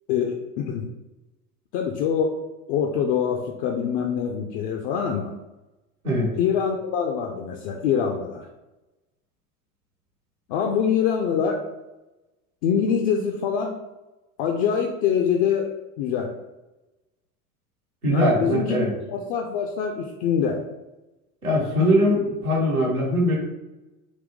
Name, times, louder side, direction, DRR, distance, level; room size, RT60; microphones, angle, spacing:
voice 1, 0.1-0.9 1.7-2.4 2.7-5.3 6.4-8.5 10.5-11.6 12.6-13.8 14.4-15.7 16.0-16.3 18.1-18.8 19.1-20.6, left 7 dB, 40° left, 2 dB, 0.4 m, -24 dB
voice 2, 18.0-18.9 21.4-23.4, equal, 85° right, -4 dB, 1.2 m, -21 dB
3.9 x 2.2 x 3.5 m, 1.0 s
figure-of-eight pair, 70°, 43 cm